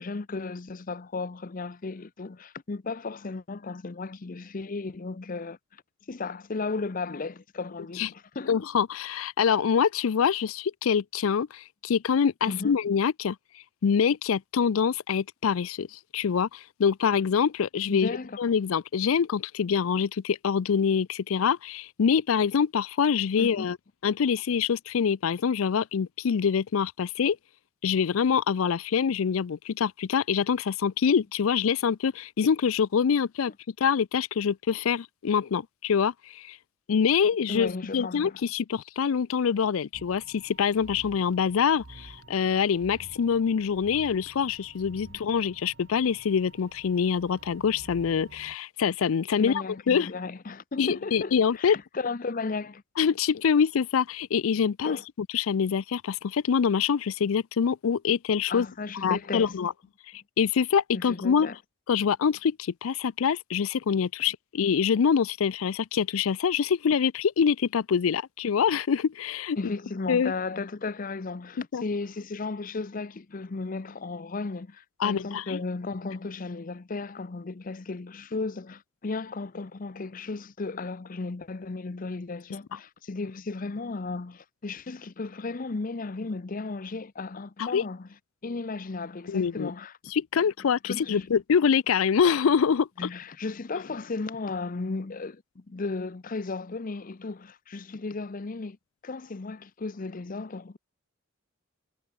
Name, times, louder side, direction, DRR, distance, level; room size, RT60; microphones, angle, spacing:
voice 1, 0.0-5.8 6.1-8.5 12.5-12.8 17.9-18.4 23.4-23.7 37.5-38.4 45.1-45.2 49.4-52.8 54.8-55.0 58.5-59.6 60.9-61.6 69.6-88.1 88.4-90.0 90.3-90.5 90.8-91.3 93.0-98.8 99.0-100.8, left 3 dB, 40° left, 0.6 m, -35 dB
voice 2, 8.5-18.1 18.4-23.8 24.0-27.4 27.8-33.5 33.8-36.6 36.9-49.5 49.9-50.1 50.8-51.8 53.0-55.0 55.3-58.7 59.0-59.7 60.4-61.5 61.9-69.6 70.1-70.3 71.7-71.8 75.0-75.6 87.6-87.8 89.3-89.7 90.1-92.9, left 7 dB, 85° left, 0.4 m, -25 dB
sound 1, 39.9-48.6, right 2 dB, 60° right, 1.2 m, -50 dB
head